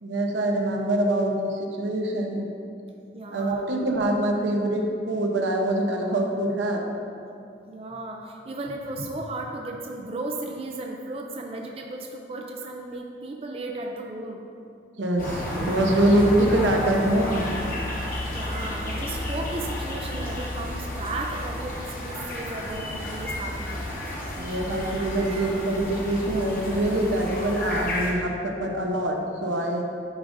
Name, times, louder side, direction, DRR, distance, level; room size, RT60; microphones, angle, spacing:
voice 1, 0.0-2.5 3.3-6.8 15.0-17.6 24.4-29.9, right 1 dB, 85° right, 1 dB, 0.8 m, -24 dB
voice 2, 3.1-3.7 7.7-14.4 18.1-23.9 24.5-24.7 25.3-25.5 26.1-26.3, right 2 dB, 30° right, 1 dB, 0.4 m, -35 dB
sound 1, 15.2-28.1, left 1 dB, 45° left, 1.1 m, -32 dB
11.0 x 5.0 x 2.6 m, 2.5 s
head